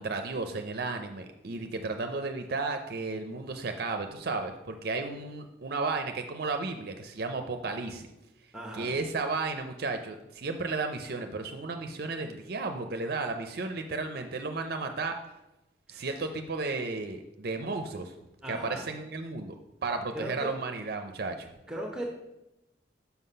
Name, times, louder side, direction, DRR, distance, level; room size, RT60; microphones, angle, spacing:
voice 1, 0.0-8.1 8.7-15.1 15.9-18.1 18.5-19.5 19.8-21.5, right 3 dB, 55° right, 6 dB, 0.5 m, -33 dB
voice 2, 8.5-8.9 15.9-16.1 18.4-18.8 20.1-20.5 21.7-22.1, right 1 dB, 5° right, -1 dB, 0.8 m, -37 dB
5.8 x 5.6 x 5.5 m, 0.94 s
head